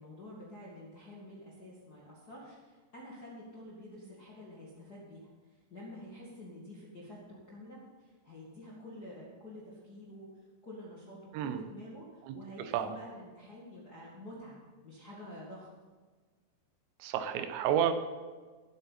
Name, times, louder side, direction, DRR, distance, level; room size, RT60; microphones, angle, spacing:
voice 1, 0.0-14.6 14.8-15.7, left 1 dB, 85° left, -6 dB, 0.8 m, -49 dB
voice 2, 17.0-17.9, right 9 dB, 75° right, 8 dB, 2.9 m, -30 dB
19.5 x 8.3 x 4.1 m, 1.4 s
omnidirectional pair, 5.7 m